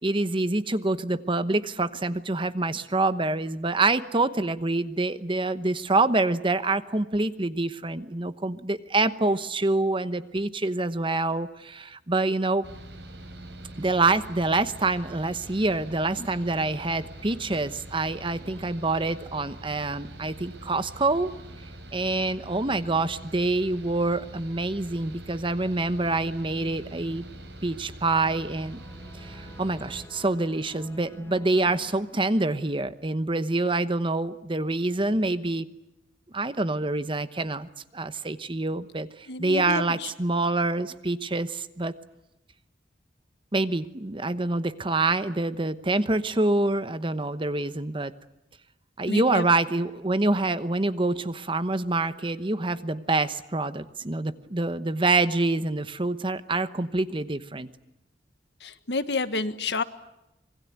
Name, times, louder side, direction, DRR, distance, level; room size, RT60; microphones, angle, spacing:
voice 1, 0.0-12.6 13.8-21.3 21.9-27.2 27.6-28.8 29.1-35.7 36.3-37.7 37.9-39.1 39.4-41.9 43.5-48.1 49.0-57.7, right 2 dB, 30° right, 12 dB, 1.0 m, -26 dB
Mechanical fan, 12.6-30.1, right 1 dB, 75° right, 5.6 m, -44 dB
sound 1, 28.1-32.9, left 1 dB, 15° left, 1.7 m, -51 dB
voice 2, 39.3-40.1 49.1-49.4 58.6-59.8, left 3 dB, 70° left, 11 dB, 1.5 m, -29 dB
26.0 x 21.5 x 9.4 m, 0.90 s
head